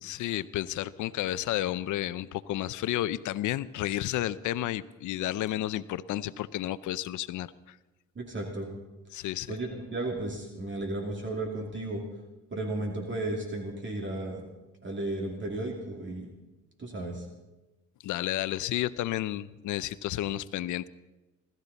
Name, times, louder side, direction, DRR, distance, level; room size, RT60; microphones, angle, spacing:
voice 1, 0.0-7.5 9.1-9.5 18.0-20.9, left 14 dB, 80° left, 16 dB, 0.6 m, -31 dB
voice 2, 8.2-8.7 9.1-12.0 12.5-14.4 14.8-16.3 16.8-17.2, right 2 dB, 40° right, 1 dB, 2.6 m, -34 dB
23.5 x 13.0 x 4.1 m, 1.1 s
cardioid pair, 90°, 30 cm